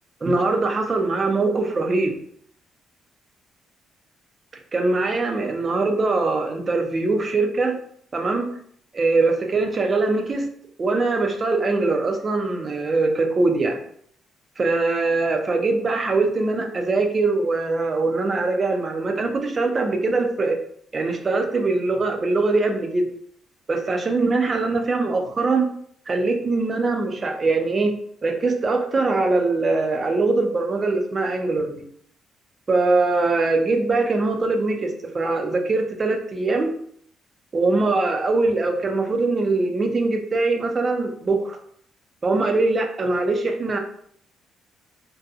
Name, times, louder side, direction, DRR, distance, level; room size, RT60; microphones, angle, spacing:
voice 1, 0.2-2.2 4.7-7.8 8.1-8.5 8.9-10.5 10.8-13.8 14.6-20.6 20.9-23.1 23.7-25.7 26.1-27.9 28.2-31.9 32.7-36.7 37.5-41.6 42.2-43.8, right 3 dB, 35° right, 4 dB, 0.5 m, -22 dB
2.6 x 2.2 x 2.4 m, 0.63 s
cardioid pair, 90°, 0 cm